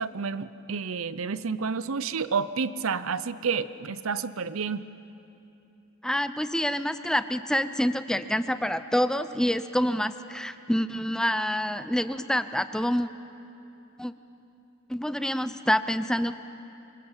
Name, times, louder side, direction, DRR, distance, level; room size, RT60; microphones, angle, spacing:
voice 1, 0.0-4.8, right 5 dB, 80° right, 14 dB, 0.7 m, -30 dB
voice 2, 6.0-13.1 14.0-14.1 14.9-16.3, equal, 5° left, 11 dB, 0.5 m, -27 dB
25.5 x 21.5 x 8.9 m, 2.9 s
head